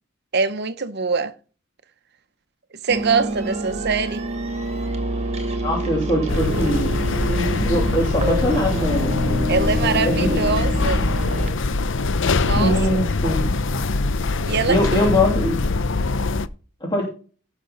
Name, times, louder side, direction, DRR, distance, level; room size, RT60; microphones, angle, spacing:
voice 1, 0.3-1.3 2.8-4.2 9.5-11.1 12.4-12.9 14.5-15.1, right 5 dB, 55° right, 1.0 m, -23 dB
sound 1, 2.9-11.5, right 1 dB, 35° right, 2.2 m, -26 dB
voice 2, 5.6-6.9 7.3-9.5 10.0-10.4 12.6-13.5 14.7-15.6 16.8-17.0, left 1 dB, 25° left, 3.0 m, -22 dB
sound 2, 6.3-16.5, left 3 dB, 65° left, 0.7 m, -23 dB
17.0 x 6.3 x 4.0 m
head